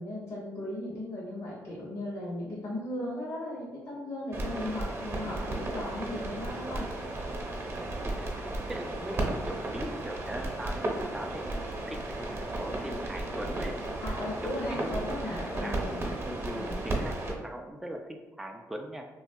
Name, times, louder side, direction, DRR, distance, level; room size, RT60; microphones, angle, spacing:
voice 1, 0.0-6.9 14.0-15.9 16.4-16.7, left 1 dB, 55° left, -6 dB, 0.8 m, -37 dB
sound 1, 4.3-17.3, right 2 dB, 40° right, 0.8 m, -34 dB
voice 2, 8.0-13.8 14.4-15.3 15.6-15.9 16.2-19.1, right 1 dB, 5° right, 3 dB, 0.3 m, -41 dB
2.7 x 2.3 x 2.6 m, 1.2 s
supercardioid pair, 60°, 7 cm